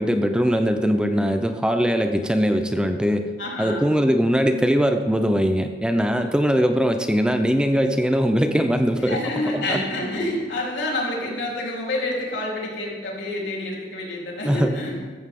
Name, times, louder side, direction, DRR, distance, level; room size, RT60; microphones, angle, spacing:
voice 1, 0.0-3.3 3.6-9.8 14.4-14.8, equal, 5° right, 7 dB, 0.5 m, -21 dB
voice 2, 3.4-3.9 9.0-15.1, left 1 dB, 75° left, -3 dB, 3.8 m, -28 dB
14.0 x 14.0 x 3.7 m, 1.5 s
head